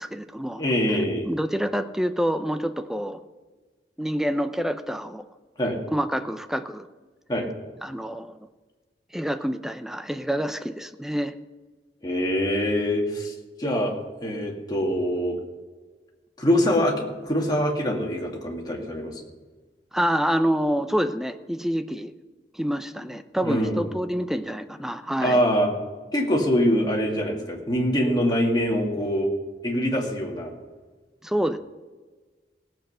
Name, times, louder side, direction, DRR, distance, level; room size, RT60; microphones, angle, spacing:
voice 1, 0.0-0.6 1.2-3.2 4.0-5.2 5.9-6.9 7.8-8.4 9.1-11.3 19.9-22.1 22.5-25.4 31.2-31.6, equal, 5° right, 9 dB, 0.5 m, -27 dB
voice 2, 0.6-1.3 5.6-5.8 7.3-7.5 12.0-13.3 13.6-15.4 16.4-19.2 23.4-23.9 25.2-25.7 26.1-29.3 29.6-30.5, equal, 25° left, -1 dB, 2.2 m, -24 dB
17.0 x 7.8 x 5.6 m, 1.4 s
head